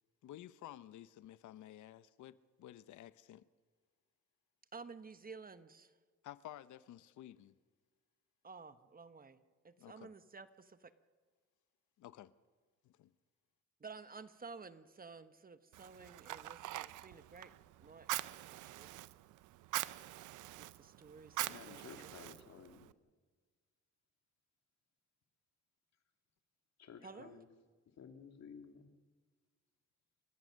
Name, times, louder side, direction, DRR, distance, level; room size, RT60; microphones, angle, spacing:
voice 1, 0.2-3.5 6.2-7.5 9.8-10.1 12.0-12.3 12.8-13.1, left 13 dB, 75° left, 0.8 m, -53 dB
voice 2, 4.7-5.9 8.4-10.9 13.8-17.5 17.8-18.1 18.5-18.9 20.6-22.1 27.0-27.4, right 4 dB, 30° right, 1.1 m, -53 dB
Fire, 15.7-22.9, right 16 dB, 85° right, 0.7 m, -44 dB
voice 3, 21.4-22.9 26.8-27.5 28.0-28.9, left 6 dB, 60° left, 2.5 m, -54 dB
29.0 x 14.5 x 6.5 m
cardioid pair, 90°, 30 cm